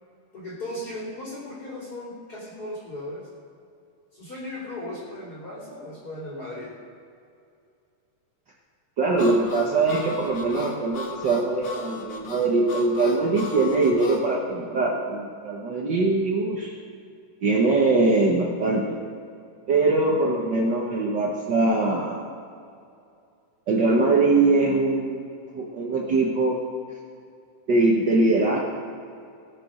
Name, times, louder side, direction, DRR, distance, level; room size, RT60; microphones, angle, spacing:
voice 1, 0.3-3.3 4.1-6.7, left 1 dB, 30° left, -10 dB, 3.7 m, -36 dB
voice 2, 9.0-16.7 17.4-19.0 19.7-22.2 23.7-25.3 25.5-26.6 27.7-28.6, right 3 dB, 85° right, -2 dB, 0.9 m, -22 dB
Harmonica, 9.2-14.3, left 4 dB, 65° left, 1.1 m, -37 dB
20.0 x 6.9 x 6.4 m, 2.5 s
omnidirectional pair, 3.8 m